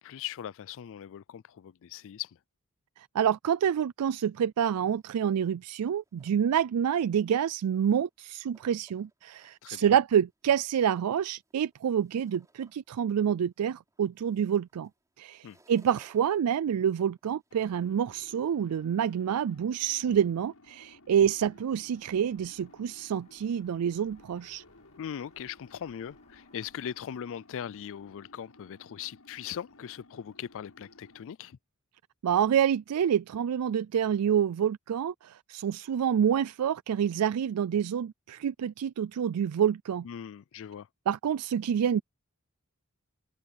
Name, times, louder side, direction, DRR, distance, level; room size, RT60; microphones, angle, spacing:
voice 1, 0.0-2.4 9.6-9.9 15.4-15.6 25.0-31.6 40.0-40.9, left 9 dB, 60° left, 0.4 m, -40 dB
voice 2, 3.0-14.9 15.2-24.6 32.2-40.1 41.1-42.0, right 8 dB, 90° right, 0.4 m, -27 dB
sound 1, 5.0-5.3 5.7-6.5 7.2-8.0 8.3-9.5 10.0-13.0 13.4-18.1, right 2 dB, 15° right, 5.4 m, -63 dB
sound 2, 17.5-31.2, left 2 dB, 80° left, 6.8 m, -57 dB
sound 3, 21.6-27.3, left 2 dB, 30° left, 2.8 m, -66 dB
head